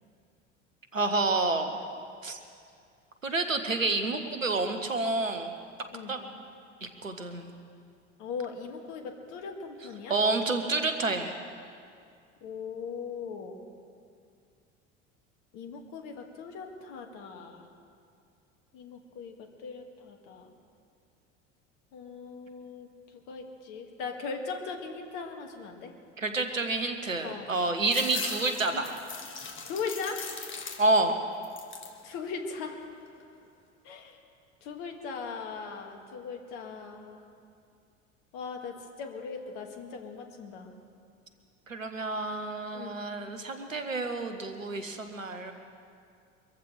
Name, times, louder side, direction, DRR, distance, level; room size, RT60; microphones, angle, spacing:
voice 1, 0.9-1.8 2.2-2.4 3.2-5.5 6.1-6.2 6.8-7.5 10.1-11.3 26.2-28.9 30.8-31.2 41.7-45.5, right 3 dB, 90° right, 7 dB, 1.3 m, -29 dB
voice 2, 5.9-6.2 8.2-10.2 12.4-13.6 15.5-17.7 18.7-20.5 21.9-25.9 27.2-27.5 28.7-28.9 29.6-30.3 32.0-32.8 33.8-34.2 34.6-37.2 38.3-40.7 42.7-43.0, left 5 dB, 55° left, 4 dB, 2.2 m, -39 dB
sound 1, 27.8-31.1 31.4-32.0 32.5-33.2, left 5 dB, 30° left, 2.0 m, -40 dB
24.5 x 14.5 x 3.4 m, 2.3 s
figure-of-eight pair, 65°, 38 cm